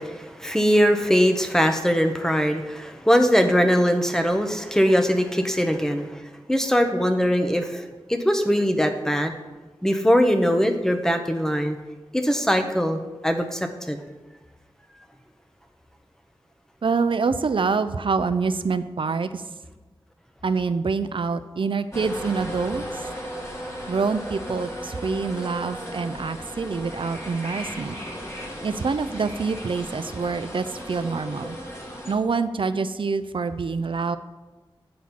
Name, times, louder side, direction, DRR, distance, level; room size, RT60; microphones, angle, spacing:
voice 1, 0.0-6.2 6.5-9.3 9.8-11.8 12.1-13.6 13.9-14.0, equal, 5° left, 6 dB, 0.8 m, -21 dB
voice 2, 16.8-19.4 20.4-22.8 23.9-28.0 28.6-31.6 32.1-34.2, right 4 dB, 65° right, 11 dB, 0.4 m, -26 dB
sound 1, 21.9-32.2, equal, 30° left, 1.7 m, -36 dB
8.6 x 4.1 x 5.9 m, 1.2 s
wide cardioid pair, 75°, 9 cm